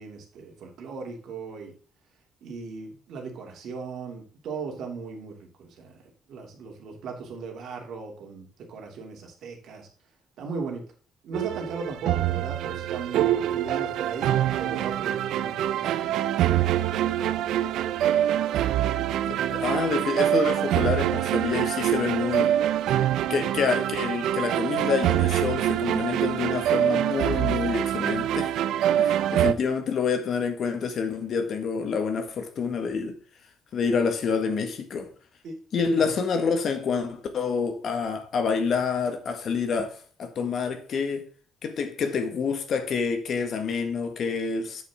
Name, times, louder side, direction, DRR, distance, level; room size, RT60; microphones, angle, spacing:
voice 1, 0.0-1.7 2.4-5.9 6.3-9.9 10.4-10.8 11.2-16.0 29.4-29.6 35.4-35.6 36.0-36.1, right 4 dB, 60° right, 3.0 m, -37 dB
sound 1, 11.3-29.5, right 11 dB, 75° right, 0.6 m, -25 dB
voice 2, 19.3-22.5 23.3-28.6 29.0-33.2 33.7-35.1 35.7-41.3 41.6-44.8, left 5 dB, 45° left, 1.7 m, -27 dB
8.3 x 7.3 x 3.7 m
cardioid pair, 150°, 0 cm